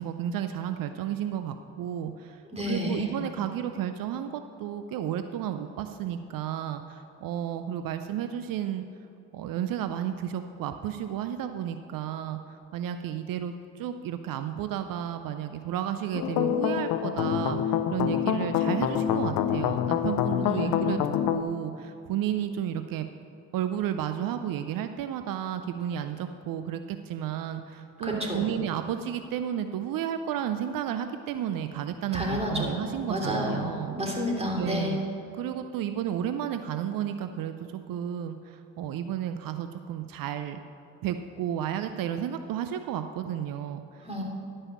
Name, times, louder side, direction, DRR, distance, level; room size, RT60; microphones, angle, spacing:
voice 1, 0.0-8.8 9.3-23.1 23.5-33.9 34.6-35.0 35.3-40.6 41.0-44.0, right 10 dB, 80° right, 9 dB, 0.5 m, -32 dB
voice 2, 2.5-3.1 20.4-20.7 28.0-28.5 32.1-34.9 44.0-44.2, equal, 20° right, -1 dB, 2.8 m, -30 dB
sound 1, 16.1-21.4, left 9 dB, 90° left, 0.6 m, -26 dB
11.0 x 5.5 x 7.1 m, 2.8 s
supercardioid pair, 65°, 33 cm